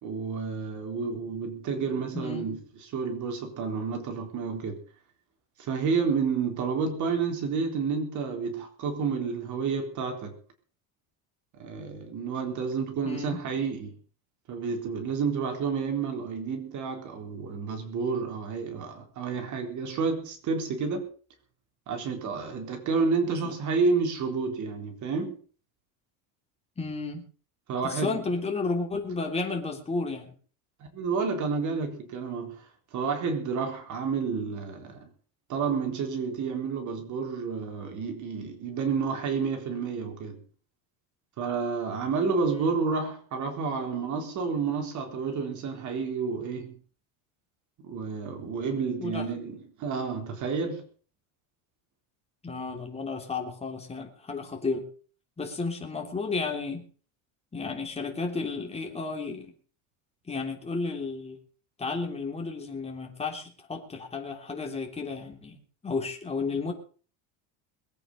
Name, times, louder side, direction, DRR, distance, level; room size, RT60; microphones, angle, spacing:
voice 1, 0.0-2.6 2.9-4.8 5.6-10.4 11.6-13.9 14.5-21.1 21.9-25.4 27.7-28.2 30.9-32.6 32.9-35.1 35.5-40.4 41.4-46.7 47.8-50.8, right 5 dB, 45° right, 3.9 m, -30 dB
voice 2, 2.1-2.5 13.0-13.4 23.3-23.6 26.8-27.3 27.8-30.3 34.5-34.6 42.4-42.7 49.0-49.3 52.4-54.9 55.4-56.9 57.5-59.5 60.3-61.4 61.8-65.6 65.8-66.7, left 4 dB, 15° left, 3.3 m, -33 dB
21.5 x 9.0 x 5.5 m
cardioid pair, 145°, 41 cm